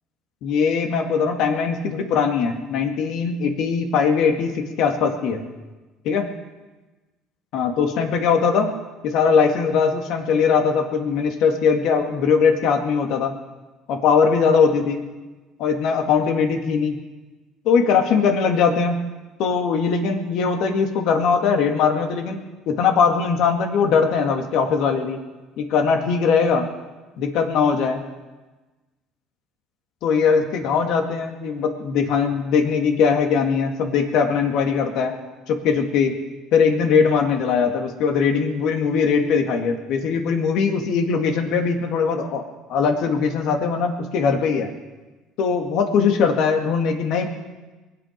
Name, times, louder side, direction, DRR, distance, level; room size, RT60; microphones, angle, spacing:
voice 1, 0.4-5.4 6.0-6.3 7.5-8.7 9.0-13.3 13.9-15.0 15.6-17.0 17.7-19.0 19.4-25.2 25.6-26.7 27.2-28.0 30.0-35.1 35.5-36.1 36.5-42.4 42.7-44.7 45.4-47.3, left 5 dB, 70° left, 4 dB, 2.0 m, -20 dB
22.5 x 8.9 x 5.2 m, 1.2 s
supercardioid pair, 80°, 0 cm